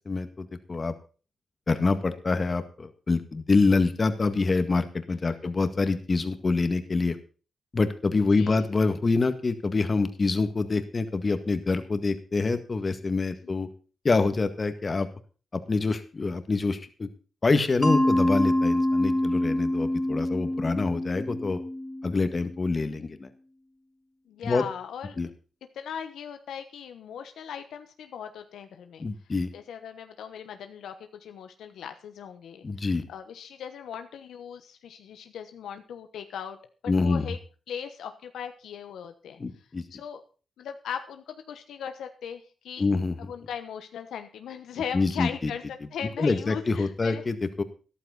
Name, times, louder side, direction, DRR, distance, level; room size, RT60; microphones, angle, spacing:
voice 1, 0.1-0.9 1.7-7.2 7.7-13.7 14.0-15.1 15.5-17.1 17.4-21.6 22.0-23.3 24.4-24.6 25.2-25.3 29.0-29.5 32.6-33.0 36.9-37.3 39.4-39.8 42.8-43.2 44.9-45.5 46.2-47.6, left 3 dB, 40° left, 9 dB, 1.9 m, -26 dB
voice 2, 8.3-8.8 24.3-25.2 25.7-29.0 29.5-36.6 37.0-37.4 37.7-39.4 39.9-40.2 40.6-42.8 43.2-45.6 45.9-47.2, left 8 dB, 85° left, 8 dB, 1.1 m, -38 dB
Mallet percussion, 17.8-22.6, left 1 dB, 5° left, 2.9 m, -26 dB
13.5 x 11.5 x 4.1 m, 0.37 s
cardioid pair, 65°, 0 cm